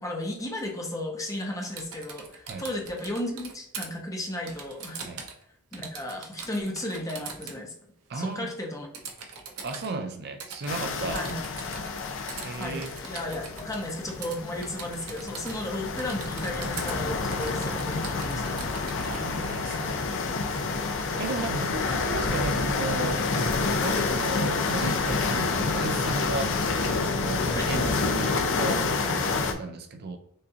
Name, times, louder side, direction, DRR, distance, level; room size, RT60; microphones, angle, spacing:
voice 1, 0.0-5.0 5.7-7.7 8.1-8.9 11.1-11.5 12.6-18.7 27.5-27.7, left 1 dB, 15° left, 0.9 m, -34 dB
Typing, 1.6-3.9 4.5-5.4 5.7-7.6 8.9-9.9 10.4-12.0 12.3-13.8 14.2-14.4 14.6-15.7 16.0-17.0 17.3-19.2, right 5 dB, 80° right, 0.9 m, -42 dB
voice 2, 8.1-8.5 9.6-11.3 12.4-13.0 19.0-26.5 26.8-30.2, right 3 dB, 50° right, 0.4 m, -35 dB
sound 1, 10.7-29.5, left 3 dB, 60° left, 0.7 m, -28 dB
6.5 x 2.6 x 2.8 m
head